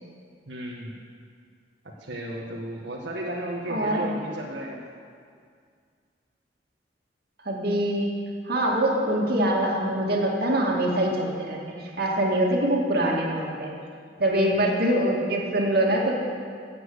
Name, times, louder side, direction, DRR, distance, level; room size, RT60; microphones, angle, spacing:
voice 1, 0.5-0.9 2.0-4.8 14.5-14.7, right 1 dB, 90° right, -3 dB, 1.8 m, -34 dB
voice 2, 3.7-4.1 7.4-8.1 8.4-13.7 14.2-16.2, right 1 dB, 60° right, -1 dB, 2.4 m, -24 dB
15.0 x 7.7 x 8.1 m, 2.2 s
head